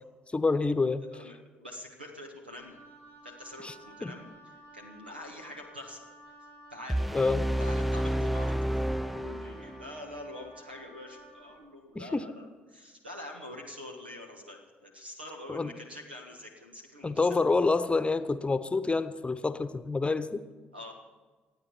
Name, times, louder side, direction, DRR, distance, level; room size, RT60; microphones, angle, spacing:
voice 1, 0.3-1.0 3.6-3.7 4.0-4.1 7.1-7.4 11.9-12.3 15.5-15.7 17.0-20.4, left 3 dB, 20° left, 12 dB, 1.0 m, -27 dB
voice 2, 1.1-2.7 3.2-6.1 6.7-7.0 7.6-17.5 20.7-20.9, left 1 dB, 90° right, 3 dB, 1.5 m, -45 dB
Wind instrument woodwind instrument, 2.5-11.6, right 1 dB, 60° right, 2.4 m, -53 dB
sound 1, 6.9-10.0, equal, ahead, 0.4 m, -30 dB
26.5 x 9.0 x 4.5 m, 1.4 s
figure-of-eight pair, 45°, 5 cm